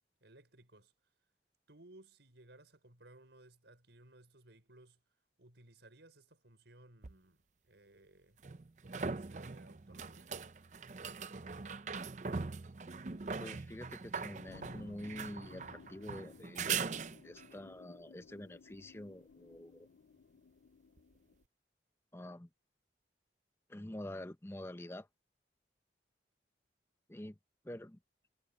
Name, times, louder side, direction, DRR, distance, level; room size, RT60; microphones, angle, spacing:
voice 1, 0.2-0.9 1.7-5.0 5.4-8.4 9.0-10.3, right 2 dB, 80° right, 4.8 m, -60 dB
sound 1, 7.0-7.1 8.4-17.6 21.0-21.1, right 5 dB, 40° right, 0.5 m, -41 dB
voice 2, 13.4-16.8 17.2-19.9 22.1-22.5 23.7-25.1 27.1-27.4 27.6-28.0, left 1 dB, 15° left, 0.6 m, -47 dB
sound 2, 14.5-21.4, left 5 dB, 80° left, 0.4 m, -58 dB
head